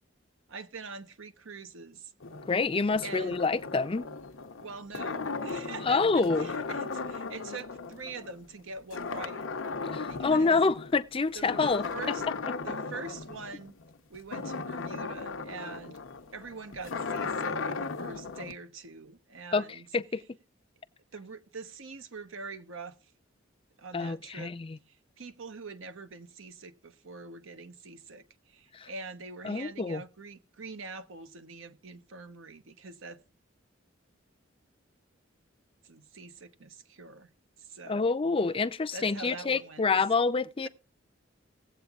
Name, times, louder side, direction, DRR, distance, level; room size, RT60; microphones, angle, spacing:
voice 1, 0.5-2.1 3.0-3.4 4.6-9.4 10.1-10.6 11.3-12.2 12.6-13.7 14.1-16.0 16.3-19.8 21.1-23.0 23.8-24.5 24.9-33.2 35.8-37.3 37.6-38.1 38.9-39.8, right 3 dB, 80° right, 0.9 m, -44 dB
sound 1, 2.2-8.6 8.9-11.0 11.4-18.5, left 4 dB, 85° left, 0.8 m, -37 dB
voice 2, 2.5-4.0 5.8-6.5 9.9-11.8 19.5-20.2 23.9-24.8 28.7-28.9 29.4-30.0 37.9-40.7, left 4 dB, 25° left, 0.5 m, -27 dB
18.5 x 8.0 x 2.4 m
head